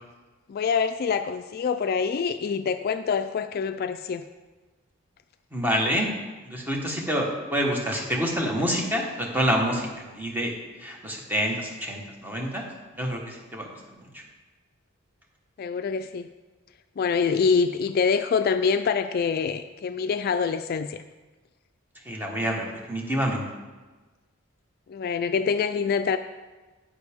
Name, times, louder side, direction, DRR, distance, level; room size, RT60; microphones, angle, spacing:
voice 1, 0.5-4.2 15.6-16.3 17.0-21.0 24.9-26.2, left 5 dB, 45° left, 10 dB, 0.3 m, -25 dB
voice 2, 5.5-6.1 6.4-10.5 10.8-12.6 13.0-13.7 22.0-23.4, equal, 10° right, 0 dB, 1.3 m, -27 dB
9.4 x 8.5 x 3.6 m, 1.3 s
head